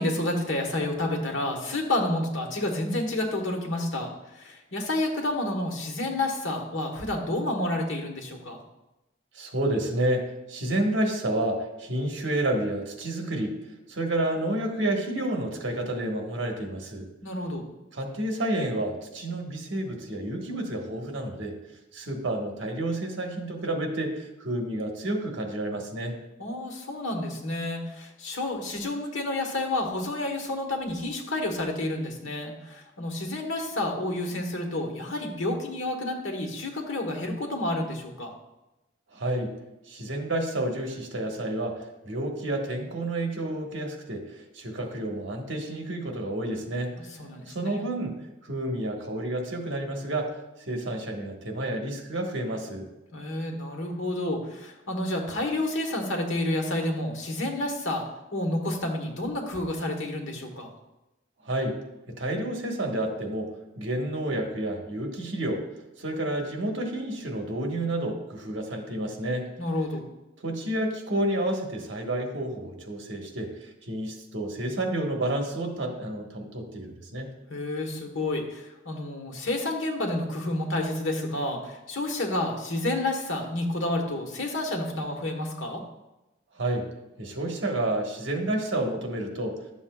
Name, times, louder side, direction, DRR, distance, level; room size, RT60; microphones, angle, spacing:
voice 1, 0.0-4.1 4.3-8.6 17.2-17.6 26.4-38.3 47.2-47.8 53.1-58.0 58.3-60.7 69.6-70.1 77.5-85.8, left 1 dB, 85° left, 2 dB, 1.4 m, -30 dB
voice 2, 9.3-13.5 13.9-17.0 17.9-21.5 21.9-26.1 39.1-39.5 39.9-46.9 47.5-48.1 48.4-50.4 50.7-52.9 61.4-61.7 62.2-65.6 66.0-69.5 70.4-77.3 86.5-86.9 87.2-89.6, right 1 dB, 70° right, 2 dB, 1.4 m, -30 dB
11.5 x 7.1 x 2.3 m, 0.99 s
head